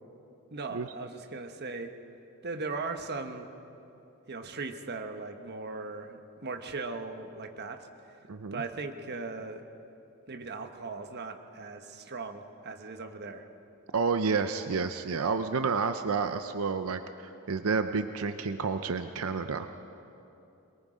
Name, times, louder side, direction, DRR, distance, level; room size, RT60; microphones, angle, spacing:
voice 1, 0.5-1.9 2.4-3.5 4.3-7.9 8.5-9.6 10.3-13.5, right 3 dB, 50° right, 6 dB, 1.2 m, -38 dB
voice 2, 8.3-8.6 13.9-19.7, right 4 dB, 85° right, 9 dB, 0.6 m, -30 dB
22.5 x 22.5 x 5.1 m, 2.8 s
head